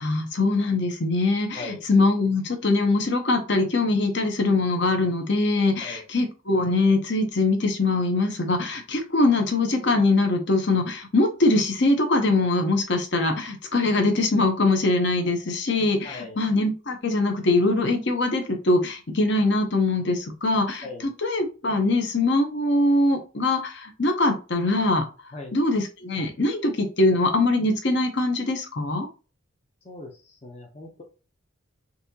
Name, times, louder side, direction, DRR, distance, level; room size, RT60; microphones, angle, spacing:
voice 1, 0.0-20.9 21.2-25.0 25.5-29.1, left 2 dB, 55° left, 5 dB, 0.8 m, -22 dB
voice 2, 16.0-16.4 20.8-21.1 25.3-25.6 29.8-31.0, left 2 dB, 30° left, 0 dB, 0.6 m, -39 dB
4.0 x 2.8 x 2.8 m, 0.33 s
head